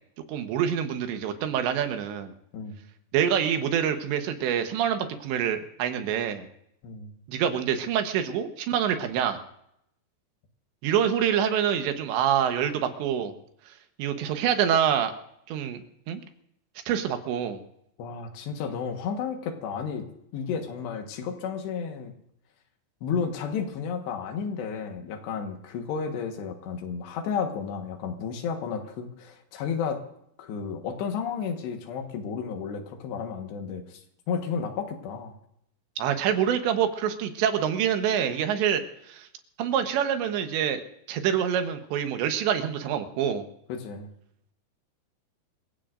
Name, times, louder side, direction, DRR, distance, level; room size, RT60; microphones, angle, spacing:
voice 1, 0.3-2.3 3.1-6.5 7.3-9.4 10.8-13.3 14.0-15.1 15.5-15.8 16.1-16.2 16.9-17.6 36.0-39.3 39.6-40.8 41.1-43.5, right 9 dB, 80° right, 7 dB, 3.4 m, -26 dB
voice 2, 6.8-7.1 18.0-22.2 23.0-30.0 30.4-34.0 34.3-35.4 43.7-44.1, left 6 dB, 75° left, 5 dB, 3.5 m, -32 dB
26.0 x 16.0 x 2.6 m, 0.75 s
omnidirectional pair, 5.1 m